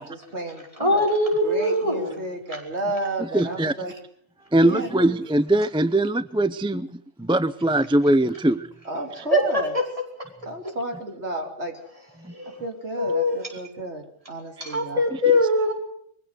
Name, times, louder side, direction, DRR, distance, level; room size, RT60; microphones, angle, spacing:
voice 1, 0.0-1.1 1.4-4.0 4.6-5.1 8.9-9.7 10.5-11.7 12.6-15.0, right 1 dB, 65° right, 3 dB, 3.5 m, -32 dB
voice 2, 0.8-2.2 9.1-10.0 10.6-10.7 12.4-12.5 13.0-13.4 14.6-15.7, left 1 dB, 30° right, 1 dB, 5.2 m, -22 dB
voice 3, 3.2-3.7 4.5-6.9 7.2-8.7, right 1 dB, 5° right, 14 dB, 0.5 m, -21 dB
23.0 x 15.5 x 8.1 m, 0.65 s
omnidirectional pair, 1.2 m